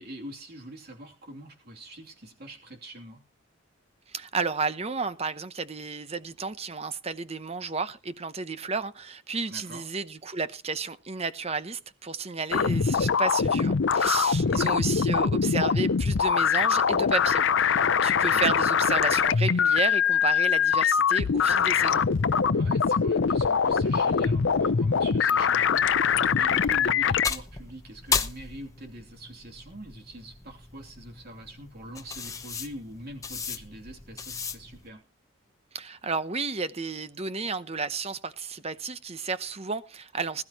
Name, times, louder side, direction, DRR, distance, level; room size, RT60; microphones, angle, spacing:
voice 1, 0.0-3.2 9.5-9.8 14.4-14.7 18.3-18.7 22.5-35.0, right 1 dB, 45° right, 2.9 m, -44 dB
voice 2, 4.1-22.0 35.7-40.4, right 4 dB, 30° right, 0.8 m, -32 dB
sound 1, 12.5-27.3, left 6 dB, 60° left, 0.5 m, -23 dB
sound 2, 25.7-34.9, left 5 dB, 15° left, 0.9 m, -36 dB
20.5 x 12.0 x 3.0 m
head